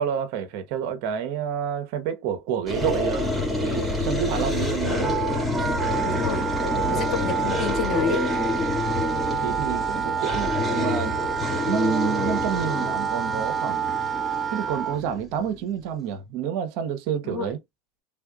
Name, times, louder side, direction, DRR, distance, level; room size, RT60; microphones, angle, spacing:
voice 1, 0.0-5.2 9.2-11.2 11.7-13.8 14.5-17.6, right 8 dB, 65° right, 1.1 m, -29 dB
sound 1, 2.7-15.6, left 2 dB, 5° right, 2.1 m, -28 dB
Wind instrument woodwind instrument, 5.0-15.0, right 7 dB, 20° right, 0.5 m, -28 dB
voice 2, 6.0-6.5 6.9-8.2 17.2-17.6, left 5 dB, 40° left, 1.6 m, -30 dB
3.7 x 3.3 x 2.4 m
supercardioid pair, 110°, 0 cm